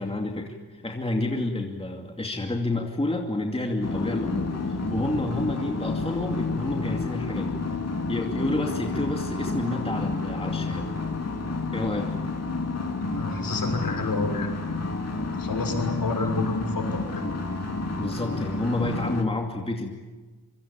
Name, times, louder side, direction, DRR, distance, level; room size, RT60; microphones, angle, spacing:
voice 1, 0.0-7.6 8.1-10.9 11.7-12.1 18.0-19.9, left 2 dB, 15° left, 2 dB, 2.4 m, -29 dB
sound 1, 3.8-19.2, left 3 dB, 40° left, 2.8 m, -30 dB
voice 2, 13.0-14.6 15.4-17.2, left 3 dB, 60° left, 5 dB, 6.2 m, -29 dB
27.0 x 24.0 x 8.7 m, 1.2 s
wide cardioid pair, 175°, 38 cm